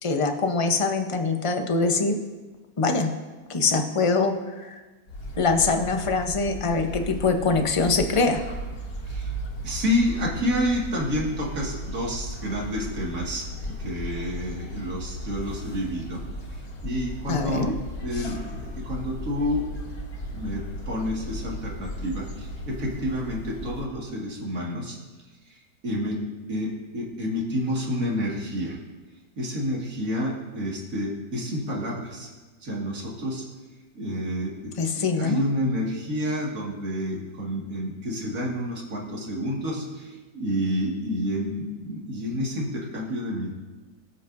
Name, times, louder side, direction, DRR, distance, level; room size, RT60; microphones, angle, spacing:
voice 1, 0.0-2.2 2.8-3.1 3.5-4.8 5.4-8.4 17.3-17.8 18.1-18.3 34.8-35.4, left 4 dB, 30° left, 4 dB, 0.6 m, -23 dB
sound 1, 5.1-23.9, equal, 60° left, 2.4 m, -36 dB
voice 2, 9.0-9.3 9.6-16.2 16.5-17.7 18.0-19.6 20.3-25.0 25.5-26.2 26.5-28.8 29.4-32.3 32.6-33.4 33.9-43.5, equal, 55° right, -3 dB, 2.4 m, -29 dB
22.5 x 8.0 x 2.6 m, 1.2 s
omnidirectional pair, 1.7 m